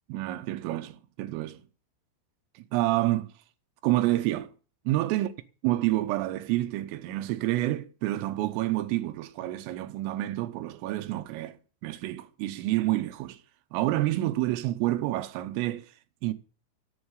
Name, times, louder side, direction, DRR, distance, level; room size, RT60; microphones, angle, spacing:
voice 1, 0.1-1.6 2.7-3.3 3.8-4.5 4.9-5.3 5.6-11.6 11.8-13.4 13.7-15.8 16.2-16.3, right 16 dB, 80° right, 3.5 m, -28 dB
15.0 x 7.3 x 8.2 m
omnidirectional pair, 6.0 m